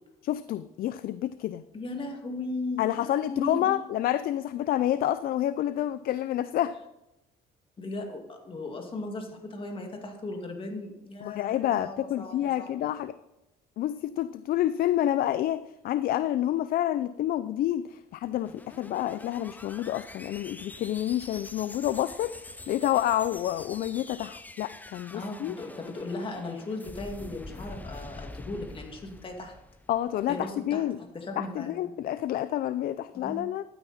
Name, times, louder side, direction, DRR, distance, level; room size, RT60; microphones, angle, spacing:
voice 1, 0.2-1.6 2.8-6.8 11.2-13.1 13.8-22.3 22.7-25.5 29.9-31.0 31.4-33.6, left 12 dB, 60° left, 14 dB, 0.5 m, -28 dB
voice 2, 1.7-3.8 7.8-12.8 25.1-29.5 30.3-30.8 31.1-31.9 33.1-33.4, left 2 dB, 30° left, 3 dB, 2.3 m, -37 dB
sound 1, 18.1-30.5, left 2 dB, 10° left, 0.6 m, -45 dB
12.5 x 9.3 x 4.2 m, 0.91 s
cardioid pair, 110°, 17 cm